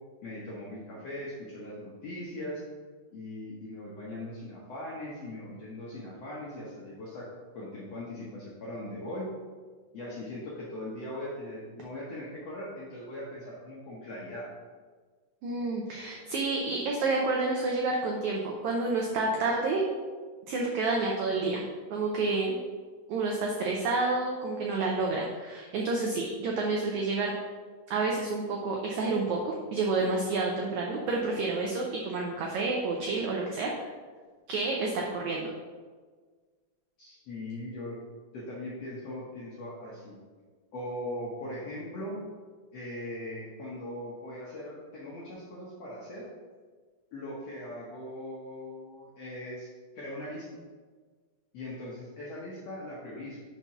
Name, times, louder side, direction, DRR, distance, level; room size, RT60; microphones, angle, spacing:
voice 1, 0.2-2.6 3.1-7.3 7.5-9.3 9.9-14.5 37.0-38.0 38.3-40.2 40.7-42.2 42.7-46.3 47.1-50.5 51.5-53.4, left 1 dB, 70° left, -6 dB, 1.5 m, -40 dB
voice 2, 15.4-19.8 20.5-21.6 21.9-22.6 23.1-27.3 27.9-33.7 34.5-35.5, right 3 dB, 85° right, -1 dB, 1.6 m, -29 dB
5.6 x 4.6 x 5.6 m, 1.5 s
omnidirectional pair, 4.2 m